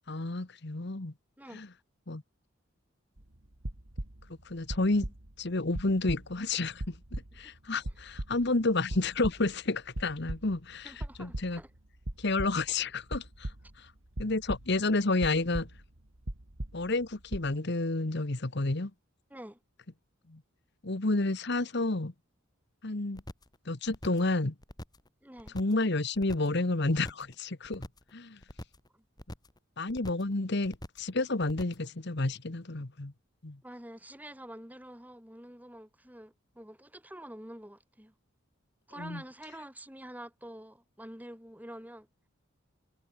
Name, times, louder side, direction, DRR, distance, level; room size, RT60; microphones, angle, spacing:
voice 1, 0.1-1.1 1.5-1.7 2.1-2.2 4.4-5.1 5.4-6.9 7.4-11.6 12.2-13.9 14.2-15.7 16.7-18.9 20.3-20.4 20.8-22.1 22.8-23.2 23.7-24.5 25.5-27.8 28.1-28.4 29.8-33.1 33.4-33.6 39.0-39.2, left 2 dB, 55° left, 1.3 m, -30 dB
sound 1, 3.2-4.3 4.7-5.5 5.7-7.5 7.8-8.6 8.9-9.7 10.0-10.6 11.0-11.7 12.0-12.8 13.1-13.8 14.2-14.9 15.2-16.0 16.2-17.0 17.3-17.5, right 1 dB, 70° right, 2.6 m, -39 dB
voice 2, 10.8-11.7 19.3-19.6 25.2-25.6 28.9-29.0 33.6-38.1 38.9-42.1, right 1 dB, 10° right, 5.6 m, -47 dB
sound 2, 23.2-23.6 23.9-24.3 24.6-25.1 25.4-25.9 26.1-26.6 26.9-27.3 27.6-28.1 28.4-28.9 29.2-29.6 29.9-30.3 30.6-31.1 31.4-31.9 32.2-32.3, equal, 20° left, 5.2 m, -44 dB
head